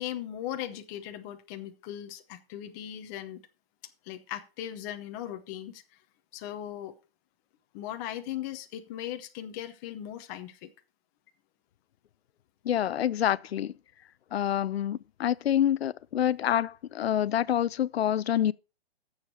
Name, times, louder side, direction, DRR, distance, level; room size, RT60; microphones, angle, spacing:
voice 1, 0.0-3.4 4.0-5.8 6.3-6.9 7.7-10.7, left 11 dB, 20° left, 0.8 m, -38 dB
voice 2, 12.6-13.7 14.3-18.5, left 10 dB, 80° left, 0.6 m, -27 dB
13.0 x 7.3 x 4.5 m
hypercardioid pair, 165°, 30 cm